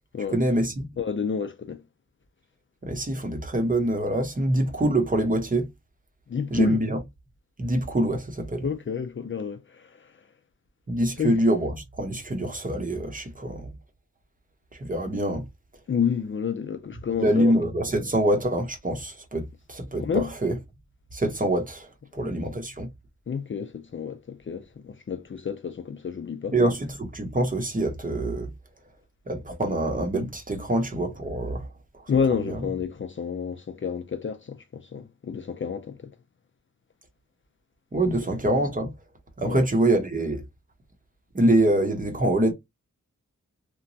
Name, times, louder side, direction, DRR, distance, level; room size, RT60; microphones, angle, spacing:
voice 1, 0.3-0.8 2.8-5.7 6.5-7.0 7.6-8.7 10.9-13.7 14.7-15.4 17.2-20.5 21.1-22.9 26.5-28.5 29.3-31.7 32.3-32.6 37.9-38.9 39.4-40.4 41.3-42.5, right 1 dB, 25° right, 0.8 m, -25 dB
voice 2, 1.0-1.8 6.3-6.8 8.6-10.1 11.2-11.3 15.9-17.5 20.0-20.3 23.3-26.5 32.1-36.1 39.4-39.7, left 6 dB, 40° left, 0.4 m, -29 dB
3.0 x 2.2 x 2.6 m
wide cardioid pair, 60°, 30 cm